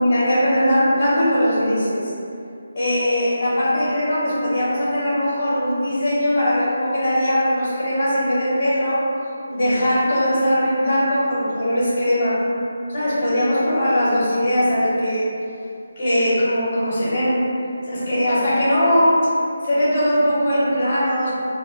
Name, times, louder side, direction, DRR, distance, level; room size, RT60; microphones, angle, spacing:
voice 1, 0.0-2.1 2.7-9.0 9.5-12.4 12.9-15.3 16.0-17.5 17.9-19.3 19.6-21.3, equal, 35° left, -9 dB, 1.1 m, -20 dB
3.2 x 2.3 x 2.2 m, 2.5 s
figure-of-eight pair, 165°, 0 cm